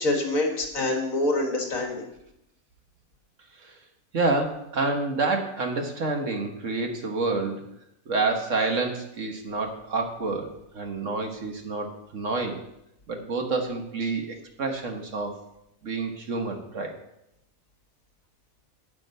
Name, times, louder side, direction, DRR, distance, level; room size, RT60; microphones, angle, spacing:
voice 1, 0.0-2.0, left 2 dB, 70° left, 2 dB, 2.2 m, -26 dB
voice 2, 4.1-7.6 8.1-11.9 12.1-12.6 13.1-15.3 15.8-16.9, right 3 dB, 60° right, 3 dB, 1.6 m, -28 dB
9.7 x 5.2 x 7.8 m, 0.82 s
omnidirectional pair, 1.5 m